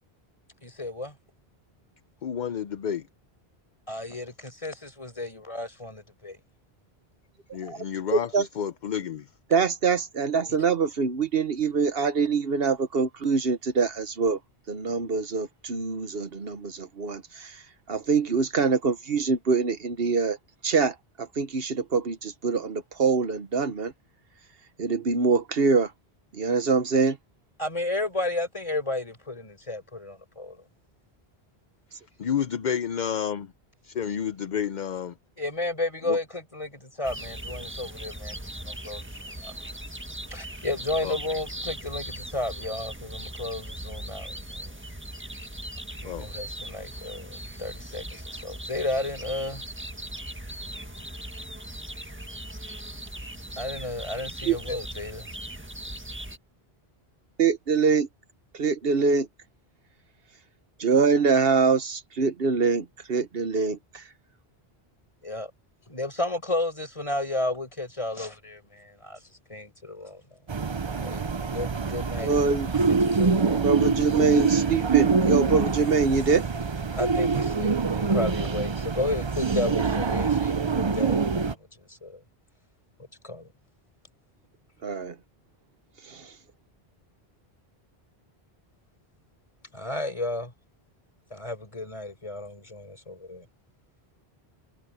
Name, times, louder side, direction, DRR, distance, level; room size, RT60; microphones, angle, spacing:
voice 1, 0.6-1.1 3.9-6.4 10.5-10.6 27.6-30.6 35.4-38.3 38.6-39.5 40.3-44.7 46.2-49.6 53.6-55.3 65.2-65.5 65.9-69.2 69.5-70.2 71.0-72.4 72.9-73.8 77.0-82.2 83.2-83.5 89.7-90.5 91.3-93.5, left 2 dB, 30° left, 4.9 m, -33 dB
voice 2, 2.2-3.1 7.5-9.3 32.2-33.5 33.8-35.2 36.1-36.2 41.0-41.1 46.0-46.3, left 8 dB, 55° left, 0.7 m, -30 dB
voice 3, 8.1-8.5 9.5-14.4 14.7-17.6 17.9-20.4 20.6-23.9 24.8-25.9 26.3-27.2 54.5-54.6 57.4-58.1 58.5-59.3 60.8-64.0 72.2-72.7 73.6-76.4 84.8-85.1 86.0-86.3, right 5 dB, 65° right, 1.3 m, -24 dB
sound 1, 37.0-56.4, right 1 dB, 10° right, 1.6 m, -39 dB
sound 2, 70.5-81.5, right 5 dB, 30° right, 0.6 m, -25 dB
omnidirectional pair, 1.0 m